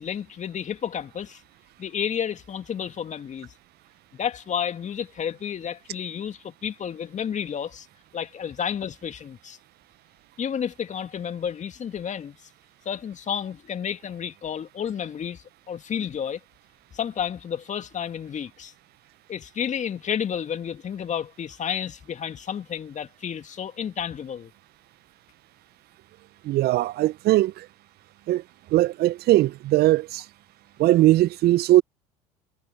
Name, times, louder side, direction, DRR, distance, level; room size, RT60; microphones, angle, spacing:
voice 1, 0.0-1.4 1.8-3.5 4.1-7.9 8.1-9.6 10.4-12.4 12.9-16.4 16.9-18.7 19.3-24.5, left 8 dB, 35° left, 2.3 m, -31 dB
voice 2, 26.4-27.6 28.3-28.4 28.7-30.2 30.8-31.8, right 16 dB, 50° right, 1.0 m, -20 dB
hypercardioid pair, 70°, 21 cm